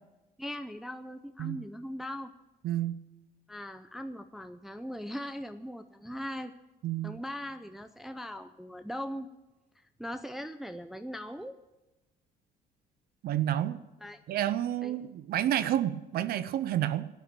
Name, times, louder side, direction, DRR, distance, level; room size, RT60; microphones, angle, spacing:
voice 1, 0.4-2.3 3.5-6.5 7.0-9.3 10.0-11.6 14.0-14.2 14.8-15.0, equal, ahead, 7 dB, 0.6 m, -39 dB
voice 2, 2.6-2.9 6.8-7.2 13.2-13.8 14.3-17.1, right 12 dB, 65° right, 14 dB, 0.7 m, -30 dB
13.5 x 9.3 x 8.9 m, 1.0 s
cardioid pair, 110°, 17 cm